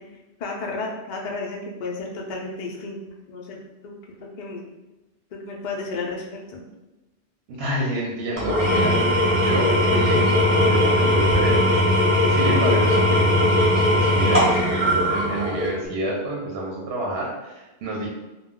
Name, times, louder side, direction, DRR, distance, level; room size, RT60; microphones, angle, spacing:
voice 1, 0.4-3.0 3.3-4.6 5.3-6.6, left 3 dB, 60° left, -1 dB, 0.5 m, -33 dB
voice 2, 7.5-9.0 9.2-18.1, right 1 dB, 65° right, -3 dB, 0.8 m, -29 dB
Engine / Tools, 8.4-15.8, left 1 dB, 15° right, 0.7 m, -19 dB
2.1 x 2.1 x 3.5 m, 1.0 s
omnidirectional pair, 1.2 m